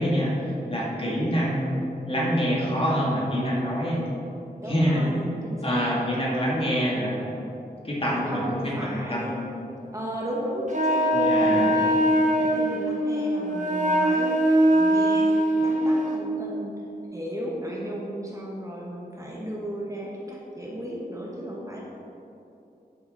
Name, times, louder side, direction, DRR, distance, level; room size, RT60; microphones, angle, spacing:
voice 1, 0.0-1.8 2.1-4.1 4.7-5.1 5.6-7.3 7.8-9.4 11.1-11.8, equal, 35° left, -5 dB, 2.0 m, -26 dB
voice 2, 4.6-5.9 8.0-9.4 9.9-16.8 17.1-21.8, equal, 20° right, -4 dB, 1.2 m, -35 dB
Wind instrument woodwind instrument, 10.7-16.2, right 1 dB, 45° right, 1.0 m, -22 dB
10.0 x 5.8 x 4.0 m, 2.7 s
wide cardioid pair, 90°, 17 cm